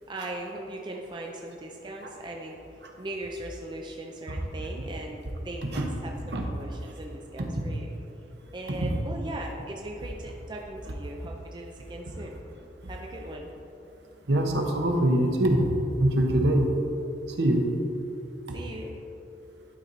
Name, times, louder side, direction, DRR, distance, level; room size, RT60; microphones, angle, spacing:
voice 1, 0.1-7.9 8.5-12.4 12.9-13.5 18.5-19.0, right 1 dB, 25° right, 0 dB, 0.5 m, -39 dB
voice 2, 14.3-15.7 16.0-16.7 17.4-17.7, right 1 dB, 65° right, 2 dB, 0.9 m, -24 dB
11.5 x 4.3 x 4.1 m, 2.9 s
head